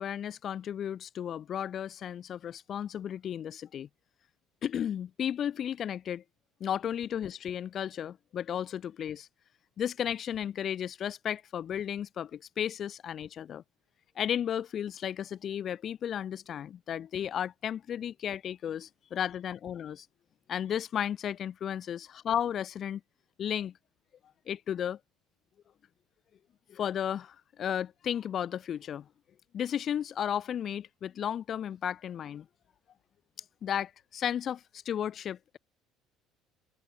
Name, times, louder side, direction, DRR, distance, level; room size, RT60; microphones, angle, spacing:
voice 1, 0.0-3.9 4.6-6.2 6.6-9.3 9.8-13.6 14.2-20.1 20.5-23.0 23.4-23.7 24.5-25.0 26.7-29.1 29.5-32.5 33.6-35.6, left 9 dB, 35° left, 5.7 m, -34 dB
cardioid pair, 155°, 0 cm